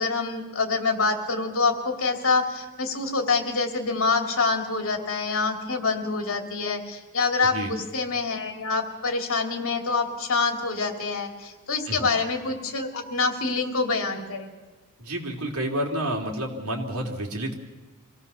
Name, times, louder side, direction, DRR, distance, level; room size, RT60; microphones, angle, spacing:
voice 1, 0.0-14.5, left 4 dB, 65° left, 5 dB, 2.7 m, -26 dB
voice 2, 15.0-17.5, right 1 dB, 70° right, 1 dB, 3.4 m, -29 dB
25.0 x 17.0 x 7.0 m, 1.3 s
head